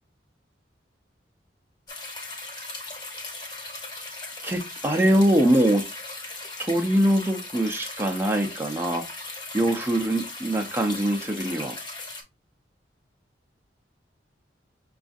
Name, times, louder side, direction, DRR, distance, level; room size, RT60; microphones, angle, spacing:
sound 1, 1.9-12.2, left 2 dB, 25° left, 0.9 m, -38 dB
voice 1, 4.4-5.9 6.6-9.0 9.5-11.8, right 1 dB, 15° right, 0.5 m, -23 dB
5.9 x 2.4 x 2.5 m
head